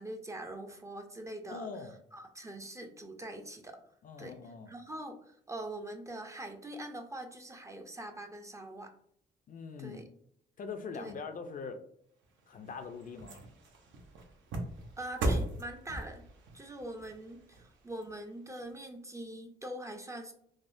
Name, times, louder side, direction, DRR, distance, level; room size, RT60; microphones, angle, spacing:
voice 1, 0.0-1.7 2.1-3.8 4.2-4.3 4.7-8.9 9.8-10.0 10.9-11.1 15.0-16.2 16.5-20.3, right 1 dB, 15° right, 5 dB, 0.4 m, -43 dB
voice 2, 1.5-1.9 4.0-4.7 9.5-10.0 10.6-11.8 12.5-13.4, left 5 dB, 45° left, 7 dB, 0.4 m, -42 dB
sound 1, 12.2-18.7 19.2-19.3, right 1 dB, 75° right, 0.7 m, -39 dB
3.4 x 2.1 x 2.5 m, 0.68 s
cardioid pair, 90°, 20 cm